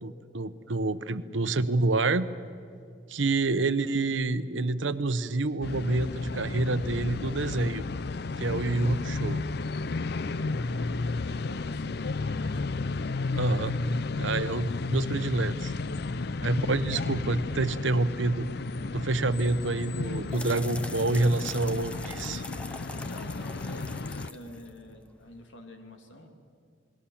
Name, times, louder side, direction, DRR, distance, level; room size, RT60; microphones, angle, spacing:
voice 1, 0.0-2.3 3.1-7.8 8.4-9.4 13.3-13.7 14.2-15.7 16.4-18.5 18.9-22.4, right 2 dB, 80° right, 13 dB, 0.9 m, -28 dB
sound 1, 5.6-24.3, left 3 dB, 55° left, 0.5 m, -33 dB
voice 2, 10.3-10.9 11.2-12.6 23.0-26.3, left 1 dB, 80° left, 5 dB, 2.8 m, -48 dB
sound 2, 19.8-25.4, left 1 dB, 5° left, 0.7 m, -43 dB
28.5 x 21.0 x 7.2 m, 2.3 s
head